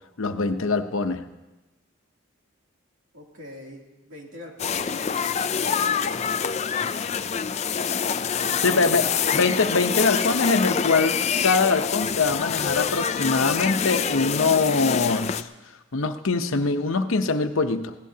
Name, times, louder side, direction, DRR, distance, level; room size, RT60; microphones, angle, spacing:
voice 1, 0.2-1.3 8.6-9.0 9.3-11.2 11.4-15.5 15.9-18.0, left 4 dB, 80° left, 8 dB, 0.8 m, -23 dB
voice 2, 3.1-6.7 8.2-9.1, equal, 75° right, -1 dB, 2.8 m, -43 dB
sound 1, 4.6-15.4, left 7 dB, 30° left, 0.4 m, -26 dB
23.5 x 16.5 x 2.8 m, 1.1 s
head